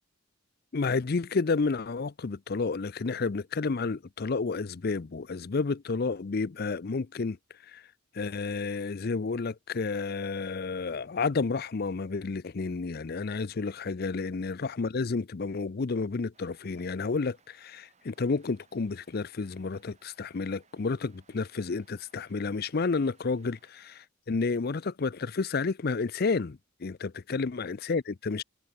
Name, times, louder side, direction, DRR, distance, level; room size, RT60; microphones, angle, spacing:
voice 1, 0.7-7.4 7.7-7.8 8.1-28.4, left 4 dB, 50° left, 0.5 m, -31 dB
sound 1, 16.3-24.1, right 5 dB, 35° right, 6.8 m, -66 dB
head